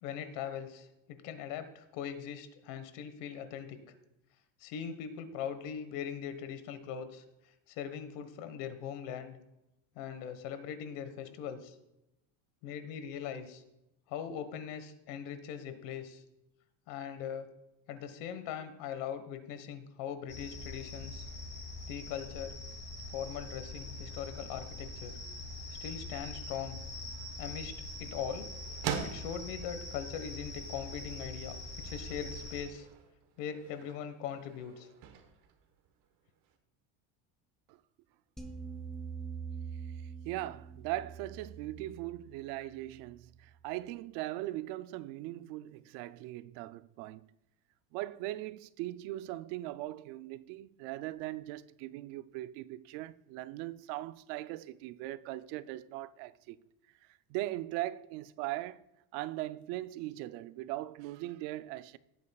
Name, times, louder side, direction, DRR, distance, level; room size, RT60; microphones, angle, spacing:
voice 1, 0.0-3.8 4.6-7.2 7.7-9.4 9.9-11.7 12.6-13.6 14.1-16.2 16.9-17.5 17.9-21.3 21.9-22.6 23.1-25.2 25.8-26.8 27.4-28.5 29.0-31.5 31.8-32.9 33.4-34.9, left 8 dB, 90° left, 1.5 m, -40 dB
sound 1, 20.3-32.6, left 2 dB, 25° left, 2.2 m, -43 dB
sound 2, 26.8-36.6, right 7 dB, 50° right, 1.2 m, -45 dB
sound 3, 38.4-43.6, right 6 dB, ahead, 0.7 m, -44 dB
voice 2, 40.2-47.3 47.9-56.6 57.3-58.8 59.1-62.0, right 16 dB, 85° right, 0.6 m, -40 dB
17.5 x 8.5 x 2.3 m
cardioid pair, 175°, 42 cm